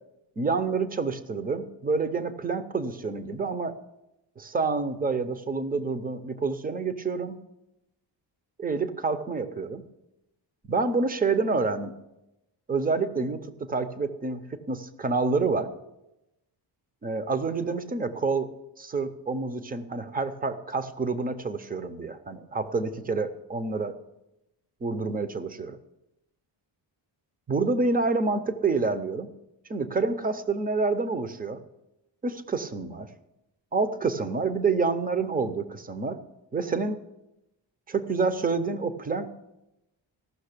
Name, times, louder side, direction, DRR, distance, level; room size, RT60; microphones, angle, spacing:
voice 1, 0.4-3.8 4.4-7.4 8.6-9.8 10.7-11.9 12.7-15.7 17.0-18.5 18.8-24.0 24.8-25.8 27.5-29.3 29.7-31.6 32.2-33.1 33.7-36.2 36.5-37.0 37.9-39.3, right 4 dB, 20° right, 12 dB, 0.5 m, -28 dB
15.0 x 6.3 x 6.6 m, 0.92 s
wide cardioid pair, 180°, 46 cm